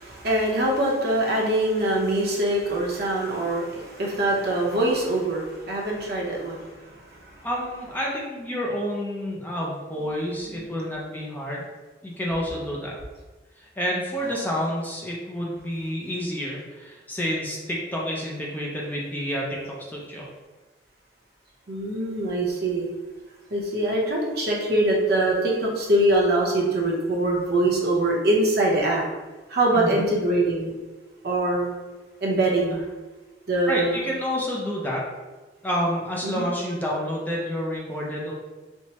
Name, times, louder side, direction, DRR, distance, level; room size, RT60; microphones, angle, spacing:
voice 1, 0.0-7.4 10.5-10.7 21.7-22.8 23.5-29.0 29.5-30.7 31.2-31.7 32.2-32.8 33.5-34.0 36.2-36.5, right 1 dB, 55° right, -2 dB, 0.8 m, -23 dB
voice 2, 7.4-11.6 12.0-13.0 13.6-20.3 29.7-30.0 33.7-35.1 35.6-38.3, equal, 10° left, -3 dB, 0.5 m, -29 dB
4.4 x 2.1 x 2.9 m, 1.2 s
head